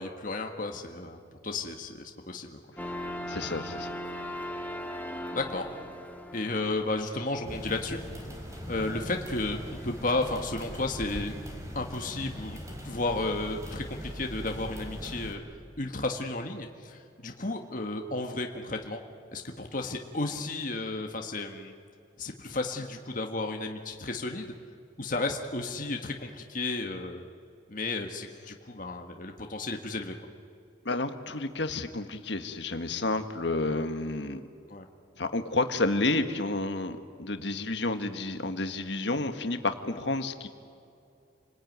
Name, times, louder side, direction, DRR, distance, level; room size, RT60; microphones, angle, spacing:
voice 1, 0.0-2.6 5.3-5.7 6.3-8.0 8.7-9.6 9.8-11.3 11.7-12.6 12.8-15.4 15.8-19.0 19.3-21.7 22.2-24.5 25.0-27.2 27.7-30.1 34.7-34.8, left 2 dB, 45° left, 3 dB, 1.6 m, -33 dB
sound 1, 2.8-11.3, equal, 10° left, 1.7 m, -40 dB
voice 2, 3.3-3.9 30.9-34.4 35.2-40.5, left 2 dB, 65° left, 8 dB, 1.6 m, -30 dB
sound 2, 7.4-15.3, equal, 15° right, 3.6 m, -41 dB
29.5 x 20.0 x 9.4 m, 2.5 s
head